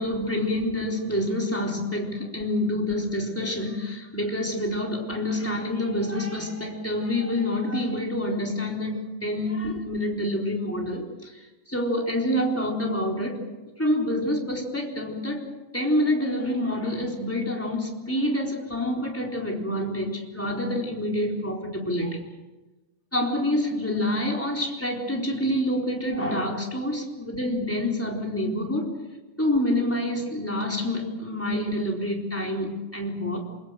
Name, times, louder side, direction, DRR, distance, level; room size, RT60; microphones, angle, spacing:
voice 1, 0.0-11.3 11.7-13.4 13.8-15.4 15.7-22.3 23.1-28.9 29.4-33.4, left 1 dB, 5° left, -1 dB, 3.3 m, -27 dB
27.5 x 22.5 x 6.5 m, 1.1 s
omnidirectional pair, 5.2 m